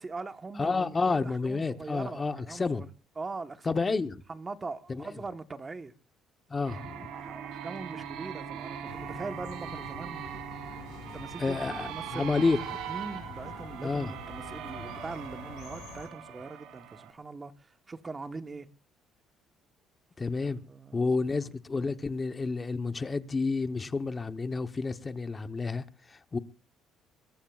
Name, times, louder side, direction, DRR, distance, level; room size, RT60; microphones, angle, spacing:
voice 1, 0.0-2.9 3.2-3.9 4.3-5.9 7.1-10.6 11.1-12.5 12.9-18.7 20.4-21.1 21.3-21.5, right 3 dB, 20° right, 1.1 m, -41 dB
voice 2, 0.6-2.8 3.7-4.1 4.9-5.1 6.5-7.1 11.4-12.8 13.8-14.1 20.2-20.6 20.9-26.4, left 4 dB, 20° left, 0.9 m, -30 dB
sound 1, 6.7-17.1, right 9 dB, 85° right, 3.1 m, -41 dB
sound 2, 8.8-16.1, left 7 dB, 85° left, 5.0 m, -47 dB
22.5 x 18.0 x 2.4 m
cardioid pair, 130°, 0 cm